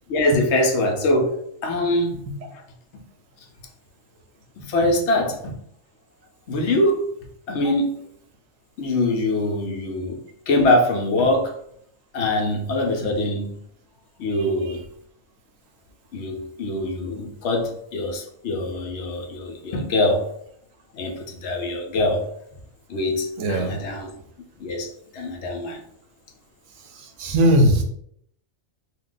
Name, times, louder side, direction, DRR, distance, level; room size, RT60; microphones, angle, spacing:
voice 1, 0.1-2.2 4.6-5.5 6.5-7.1 7.5-8.0 8.8-10.2 10.5-11.5 12.1-13.5 14.2-14.8 16.1-20.3 20.9-22.2 22.9-24.1 24.6-24.9 25.1-25.8, left 1 dB, 65° left, 1 dB, 0.9 m, -23 dB
voice 2, 23.4-23.7 27.2-27.8, equal, 85° right, 5 dB, 1.0 m, -18 dB
2.8 x 2.2 x 3.8 m, 0.69 s
omnidirectional pair, 1.3 m